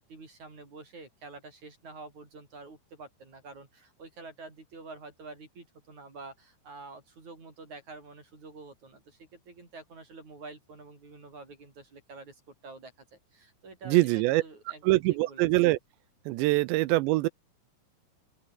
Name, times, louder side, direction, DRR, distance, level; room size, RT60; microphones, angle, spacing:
voice 1, 0.0-15.5, right 3 dB, 40° right, 7.5 m, -48 dB
voice 2, 13.9-14.4 14.8-15.8 16.3-17.3, right 19 dB, 85° right, 2.8 m, -24 dB
open air
omnidirectional pair, 5.3 m